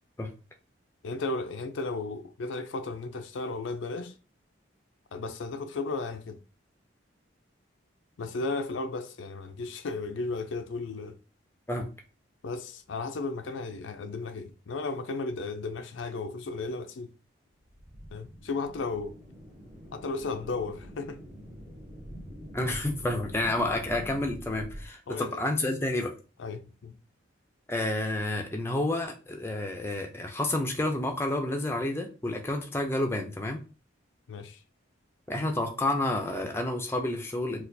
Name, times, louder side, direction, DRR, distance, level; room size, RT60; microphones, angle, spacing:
voice 1, 1.0-4.1 5.1-6.4 8.2-11.2 12.4-17.1 18.1-19.2 19.9-21.2 25.1-25.4 26.4-27.0 34.3-34.6, left 3 dB, 70° left, 0.4 m, -34 dB
sound 1, 17.6-24.9, equal, 40° right, 1.1 m, -45 dB
voice 2, 22.5-26.1 27.7-33.6 35.3-37.6, left 1 dB, 10° left, 0.4 m, -30 dB
4.2 x 2.4 x 2.6 m
head